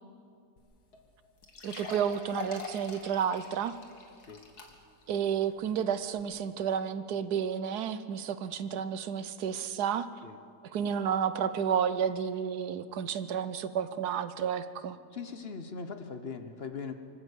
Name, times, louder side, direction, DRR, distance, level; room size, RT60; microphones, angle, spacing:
sound 1, 0.6-0.7 0.9-1.0 1.4-5.0 5.5-5.6 6.2-6.3, left 4 dB, 85° left, 2.5 m, -44 dB
voice 1, 1.6-3.8 5.1-10.1 10.6-15.0, right 8 dB, 85° right, 13 dB, 1.4 m, -31 dB
voice 2, 15.1-16.9, left 5 dB, 45° left, 8 dB, 1.1 m, -40 dB
24.5 x 13.0 x 8.2 m, 2.4 s
omnidirectional pair, 1.6 m